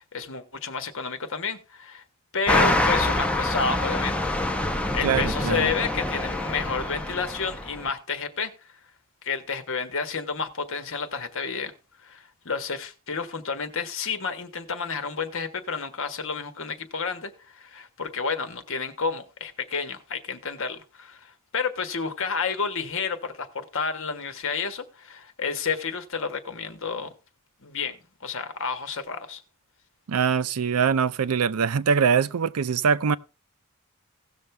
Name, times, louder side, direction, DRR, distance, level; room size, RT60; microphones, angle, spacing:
voice 1, 0.0-2.0 2.3-8.5 9.2-11.7 12.0-27.1 27.6-29.4, left 5 dB, 65° left, 1.4 m, -30 dB
sound 1, 2.5-7.9, left 1 dB, 5° left, 0.9 m, -26 dB
voice 2, 5.0-5.7 30.1-33.2, right 6 dB, 90° right, 0.5 m, -23 dB
17.0 x 6.5 x 3.3 m
head